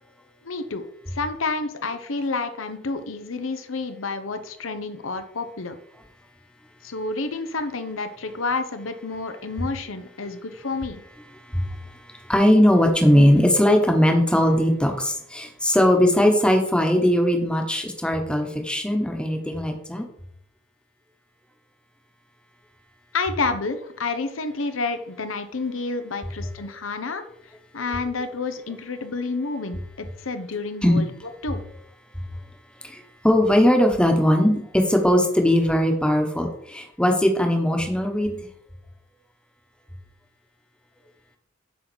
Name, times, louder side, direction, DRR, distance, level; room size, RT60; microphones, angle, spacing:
voice 1, 0.4-5.7 6.8-11.0 23.1-27.2 27.7-31.1 31.4-31.6, left 3 dB, 85° left, 9 dB, 0.9 m, -29 dB
voice 2, 11.5-20.1 30.8-31.0 32.8-38.4, equal, 5° left, 3 dB, 1.2 m, -20 dB
8.4 x 4.0 x 6.2 m, 0.71 s
head